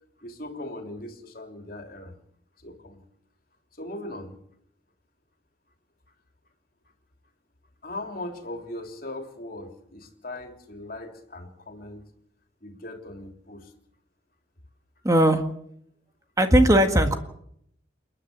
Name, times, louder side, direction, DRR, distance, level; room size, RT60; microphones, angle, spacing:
voice 1, 0.2-2.1 2.6-3.0 3.7-4.4 7.8-12.1 12.6-13.7, left 1 dB, 50° left, 4 dB, 3.2 m, -39 dB
voice 2, 15.0-15.4 16.4-17.1, right 1 dB, 20° right, 5 dB, 1.8 m, -18 dB
29.5 x 10.5 x 9.5 m, 0.72 s
head